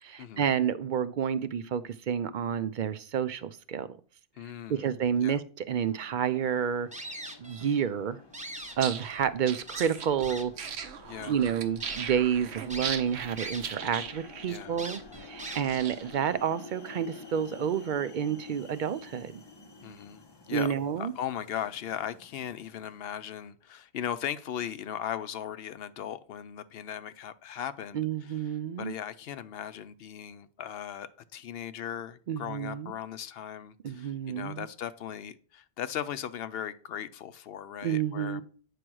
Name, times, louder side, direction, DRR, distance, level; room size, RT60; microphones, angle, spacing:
voice 1, 0.0-4.0 4.7-6.9 7.4-8.2 8.8-10.5 11.2-19.3 20.5-21.1 27.9-28.9 32.3-32.9 33.8-34.7 37.8-38.4, right 8 dB, 60° right, 0.6 m, -30 dB
voice 2, 4.4-4.9 5.2-5.4 11.0-11.4 14.5-14.8 19.8-20.2 20.5-28.4 28.8-38.4, left 9 dB, 70° left, 0.8 m, -38 dB
sound 1, 5.8-23.3, left 3 dB, 30° left, 0.6 m, -51 dB
sound 2, 6.9-7.9 8.2-9.2 9.7-10.7 11.2-11.3 11.8-12.0 12.7-13.9 14.2-14.3 14.8-15.9, right 1 dB, 10° right, 0.8 m, -42 dB
sound 3, 8.7-16.3, right 7 dB, 85° right, 1.0 m, -39 dB
8.6 x 3.3 x 6.1 m
omnidirectional pair, 1.1 m